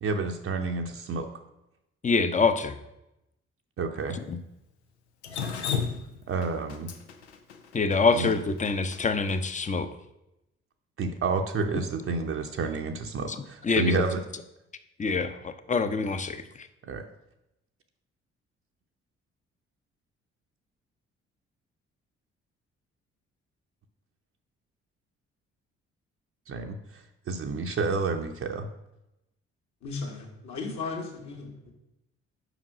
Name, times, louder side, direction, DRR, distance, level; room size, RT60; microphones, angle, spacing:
voice 1, 0.0-1.3 3.8-4.2 6.3-6.9 8.1-8.3 11.0-14.2 16.8-17.0 26.5-28.7, right 4 dB, 40° right, 4 dB, 0.7 m, -30 dB
voice 2, 2.0-2.8 4.1-4.4 7.7-9.9 13.3-14.1 15.0-16.7, left 4 dB, 20° left, 11 dB, 0.7 m, -26 dB
Drip, 5.2-9.4, left 6 dB, 90° left, 0.5 m, -33 dB
voice 3, 29.8-31.5, left 4 dB, 55° left, 0 dB, 2.0 m, -35 dB
5.4 x 4.9 x 6.0 m, 0.88 s
hypercardioid pair, 45°, 33 cm